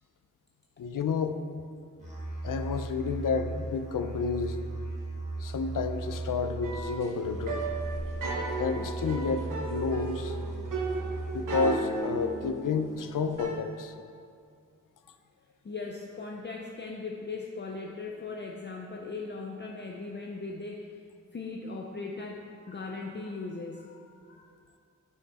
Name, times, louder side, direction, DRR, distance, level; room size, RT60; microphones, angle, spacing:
voice 1, 0.8-1.4 2.4-4.6 5.4-7.7 8.6-10.4 11.3-13.9, left 5 dB, 85° left, 8 dB, 0.6 m, -30 dB
Musical instrument, 2.0-12.0, right 2 dB, 20° right, 2.0 m, -37 dB
sound 1, 6.6-13.6, right 3 dB, 90° right, 1.0 m, -35 dB
voice 2, 15.6-21.0 21.3-24.8, left 3 dB, 35° left, 0 dB, 0.5 m, -39 dB
9.8 x 5.8 x 4.1 m, 2.3 s
wide cardioid pair, 145°, 31 cm